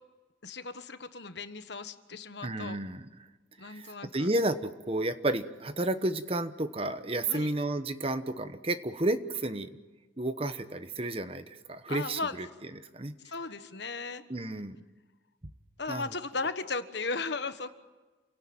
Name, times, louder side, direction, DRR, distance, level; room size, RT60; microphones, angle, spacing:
voice 1, 0.4-2.8 3.6-4.3 7.3-7.5 11.9-12.4 13.2-14.2 15.8-17.7, left 3 dB, 60° left, 10 dB, 1.3 m, -36 dB
voice 2, 2.4-3.1 3.6-9.7 10.2-12.5 12.8-13.1 14.3-14.8 15.9-16.0, right 2 dB, 30° right, 11 dB, 1.0 m, -32 dB
28.5 x 17.5 x 8.8 m, 1.3 s
head